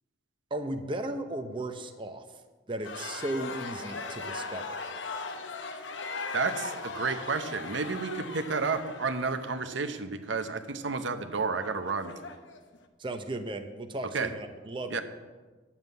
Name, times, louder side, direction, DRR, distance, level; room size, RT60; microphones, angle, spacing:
voice 1, 0.5-2.3 2.7-4.8 13.0-15.0, right 1 dB, 25° right, 6 dB, 0.7 m, -35 dB
sound 1, 2.8-12.8, left 4 dB, 75° left, 0.9 m, -39 dB
voice 2, 6.3-12.1 14.1-14.3 14.9-15.0, right 4 dB, 75° right, 8 dB, 0.8 m, -31 dB
9.4 x 7.2 x 8.2 m, 1.3 s
head